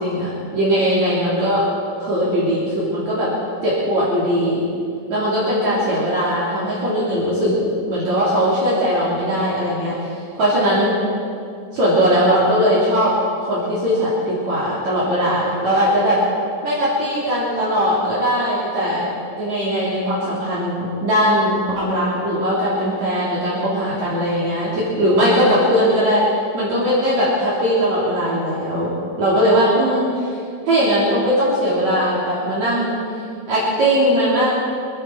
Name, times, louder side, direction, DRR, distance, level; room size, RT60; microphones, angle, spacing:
voice 1, 0.0-1.7 2.0-3.3 3.6-4.6 5.1-10.1 10.4-10.9 11.7-13.1 13.5-16.2 16.6-19.1 19.4-26.2 26.5-28.9 29.2-30.4 30.7-33.0 33.5-34.5, equal, 60° right, -8 dB, 4.2 m, -19 dB
26.0 x 10.5 x 4.6 m, 2.5 s
omnidirectional pair, 3.7 m